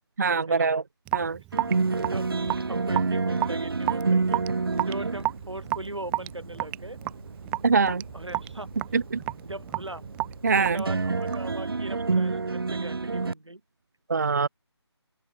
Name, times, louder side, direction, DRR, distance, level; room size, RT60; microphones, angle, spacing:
voice 1, 0.2-0.8 1.1-1.4 7.6-8.0 8.9-9.2 10.4-10.8 14.1-14.5, right 4 dB, 40° right, 0.4 m, -23 dB
Raindrop / Drip, 1.1-11.6, right 19 dB, 10° right, 2.2 m, -32 dB
sound 1, 1.5-13.3, right 4 dB, 55° right, 2.6 m, -29 dB
voice 2, 2.0-2.3 2.7-4.4 4.8-7.0 8.1-8.7 9.4-10.0 10.6-13.6, right 1 dB, 85° right, 7.2 m, -39 dB
open air
figure-of-eight pair, 160°, 14 cm